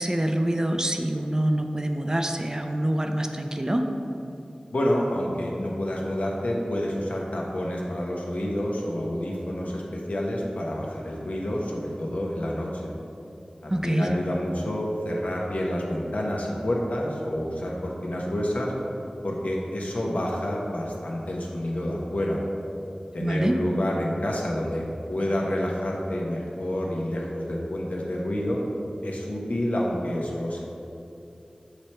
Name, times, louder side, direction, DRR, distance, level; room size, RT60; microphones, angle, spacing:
voice 1, 0.0-3.9 13.7-14.1 23.2-23.6, right 1 dB, 25° right, 4 dB, 0.4 m, -25 dB
voice 2, 4.7-12.9 13.6-18.7 19.2-22.4 23.1-24.8 25.1-28.6 29.0-30.6, left 1 dB, 80° left, -2 dB, 0.9 m, -28 dB
7.1 x 3.3 x 4.3 m, 2.8 s
wide cardioid pair, 55°, 2 cm